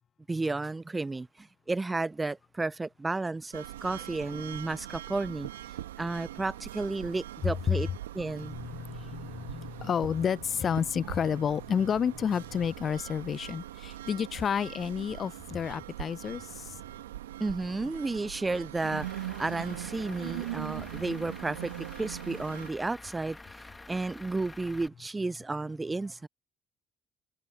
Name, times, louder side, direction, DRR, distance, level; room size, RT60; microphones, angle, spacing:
voice 1, 0.3-5.5 6.0-7.9 8.1-8.6 17.4-19.1 19.4-26.3, right 3 dB, 20° right, 0.4 m, -32 dB
sound 1, 3.5-22.7, right 13 dB, 85° right, 1.7 m, -42 dB
voice 2, 8.4-16.8, left 7 dB, 50° left, 0.5 m, -30 dB
Truck / Idling, 18.8-24.9, left 2 dB, 20° left, 1.7 m, -48 dB
hypercardioid pair, 50°, 0 cm